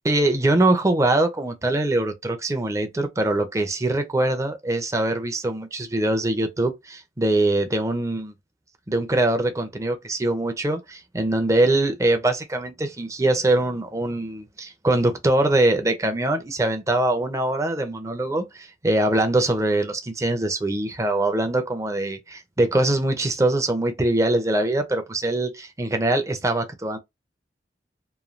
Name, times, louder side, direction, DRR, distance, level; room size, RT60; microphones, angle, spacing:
voice 1, 0.0-8.3 8.9-27.0, right 2 dB, 20° right, 0.5 m, -23 dB
3.1 x 2.2 x 2.4 m
head